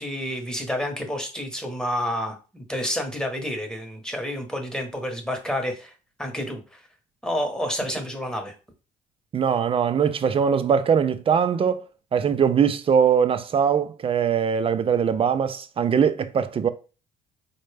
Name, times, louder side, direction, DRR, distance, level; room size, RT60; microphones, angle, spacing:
voice 1, 0.0-5.9 6.2-6.8 7.2-8.5, equal, 5° left, 1.0 m, -29 dB
voice 2, 9.3-11.8 12.1-16.7, right 7 dB, 35° right, 0.4 m, -21 dB
4.1 x 2.2 x 3.3 m
supercardioid pair, 75°, 17 cm